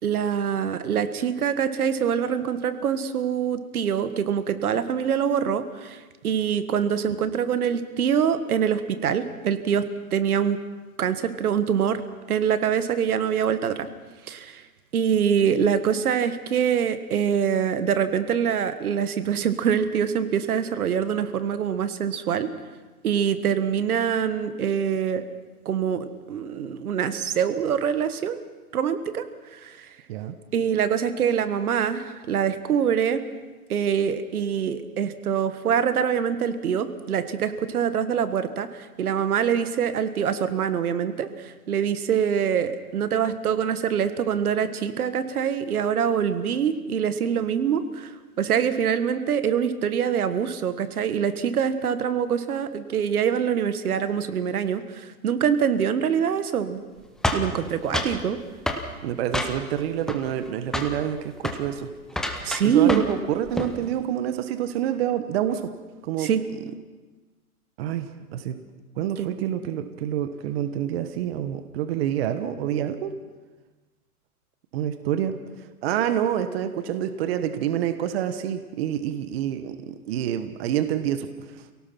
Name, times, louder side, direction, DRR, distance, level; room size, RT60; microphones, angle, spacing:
voice 1, 0.0-9.9 10.1-10.6 11.0-12.0 12.3-13.9 14.3-14.6 14.9-22.5 23.0-25.2 25.6-28.4 28.7-29.3 29.5-29.9 30.5-33.2 33.7-56.8 57.3-58.4 62.4-63.0 66.2-66.4 69.2-69.3, right 8 dB, 75° right, 11 dB, 1.7 m, -24 dB
sound 1, 57.2-58.2 58.7-58.9 59.3-59.8 60.1-60.5 60.7-61.0 61.4-61.6 62.1-63.2 63.4-63.8, left 1 dB, ahead, 0.7 m, -28 dB
voice 2, 59.0-61.9 62.6-65.7 66.0-66.3 67.8-68.6 69.0-73.2 74.7-75.4 75.8-81.3, right 10 dB, 45° right, 10 dB, 1.2 m, -27 dB
27.5 x 17.5 x 5.9 m, 1.2 s
hypercardioid pair, 145°, 44 cm